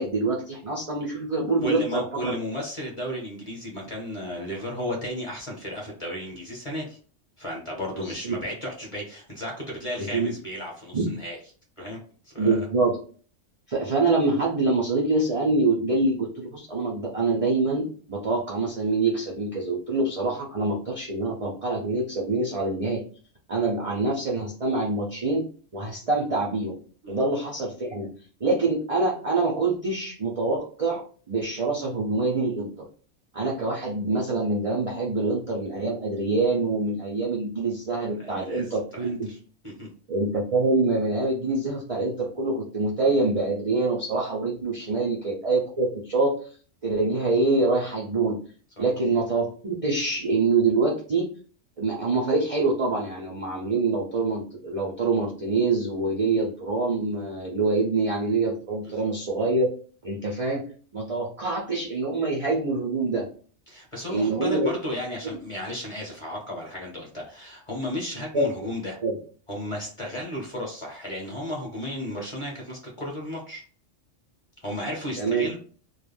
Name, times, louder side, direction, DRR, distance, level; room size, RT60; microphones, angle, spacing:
voice 1, 0.0-2.4 8.0-8.4 10.0-10.3 10.9-11.2 12.4-13.0 13.7-23.0 23.5-25.5 25.7-26.8 27.1-28.1 28.4-32.7 33.3-39.3 40.1-46.3 46.8-48.4 48.8-51.3 51.8-59.7 60.0-60.6 60.9-63.2 64.1-64.7 68.3-68.5 69.0-69.2 75.2-75.5, right 3 dB, 60° right, -2 dB, 0.3 m, -25 dB
voice 2, 1.6-7.0 7.4-11.4 11.8-12.0 12.2-12.6 27.0-27.2 38.2-39.4 39.6-39.9 44.8-44.9 48.8-48.9 58.8-59.1 63.7-69.0 69.5-73.6 74.6-75.6, equal, 30° left, -2 dB, 0.8 m, -34 dB
2.3 x 2.2 x 3.3 m, 0.42 s
omnidirectional pair, 1.3 m